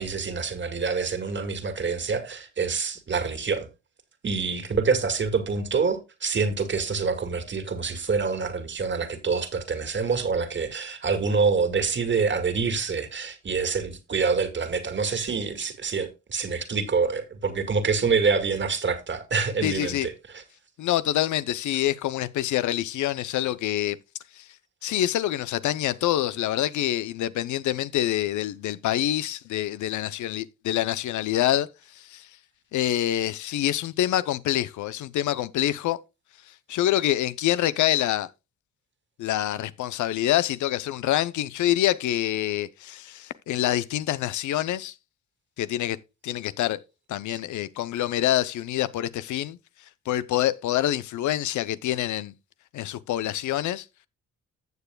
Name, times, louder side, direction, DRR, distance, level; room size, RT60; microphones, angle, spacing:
voice 1, 0.0-3.7 4.2-20.4, right 5 dB, 40° right, 1.9 m, -26 dB
voice 2, 19.6-20.1 20.8-24.0 24.4-24.5 24.8-31.7 31.9-32.3 32.7-36.0 36.7-38.3 39.2-44.9 45.6-46.0 46.2-46.8 47.1-49.6 50.1-52.3 52.7-53.9, left 13 dB, 75° left, 0.7 m, -26 dB
15.0 x 6.8 x 2.3 m
cardioid pair, 90°, 30 cm